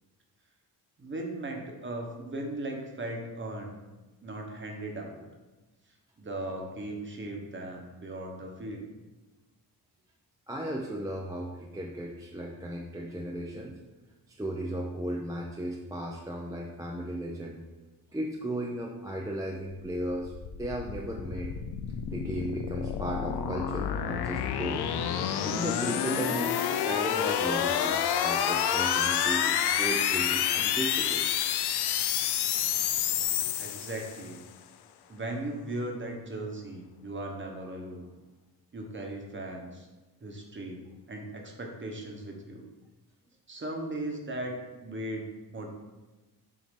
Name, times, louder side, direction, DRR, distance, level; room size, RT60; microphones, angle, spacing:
voice 1, 1.0-3.8 4.2-5.2 6.2-8.9 33.3-34.4 35.1-38.1 38.7-39.9 40.2-40.8 41.1-42.6 43.5-45.7, right 1 dB, 30° right, 1 dB, 1.1 m, -38 dB
voice 2, 10.5-13.8 14.3-17.6 18.1-20.3 20.6-21.5 22.1-24.9 25.4-31.3, right 1 dB, 10° right, -1 dB, 0.5 m, -35 dB
sound 1, 19.9-34.3, left 9 dB, 80° left, 0.5 m, -29 dB
7.3 x 2.8 x 5.2 m, 1.2 s
wide cardioid pair, 120°, 39 cm